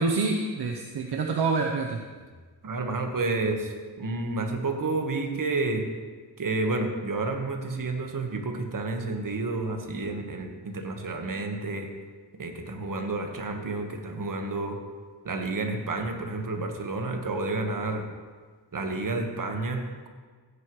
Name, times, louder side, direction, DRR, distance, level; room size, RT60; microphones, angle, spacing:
voice 1, 0.0-2.0, right 4 dB, 60° right, 2 dB, 0.9 m, -26 dB
voice 2, 2.6-5.8 6.4-11.9 12.4-14.8 15.2-18.1 18.7-20.1, right 3 dB, 45° right, 4 dB, 1.5 m, -30 dB
16.0 x 9.7 x 3.2 m, 1.5 s
cardioid pair, 95°, 43 cm